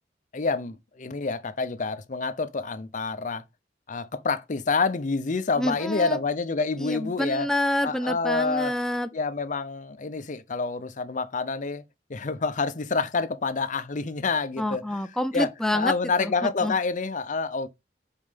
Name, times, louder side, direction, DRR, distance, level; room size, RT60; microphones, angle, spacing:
voice 1, 0.3-3.4 3.9-7.5 7.8-8.7 9.1-11.8 12.1-15.0 15.3-17.7, left 4 dB, 45° left, 0.6 m, -28 dB
voice 2, 5.6-6.2 6.8-9.1 14.6-15.9 16.2-16.7, left 1 dB, 5° left, 0.4 m, -27 dB
5.4 x 4.5 x 5.1 m
head